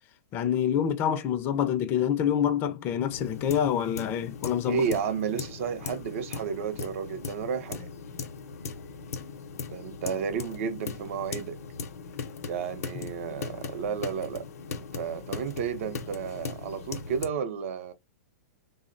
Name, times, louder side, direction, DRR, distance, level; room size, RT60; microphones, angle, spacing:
voice 1, 0.3-4.8, left 9 dB, 25° left, 0.3 m, -26 dB
sound 1, 3.1-17.3, left 5 dB, 80° left, 0.5 m, -39 dB
voice 2, 4.6-7.9 9.7-11.6 12.5-17.9, right 7 dB, 55° right, 0.5 m, -32 dB
3.4 x 2.0 x 2.5 m
hypercardioid pair, 155°, 8 cm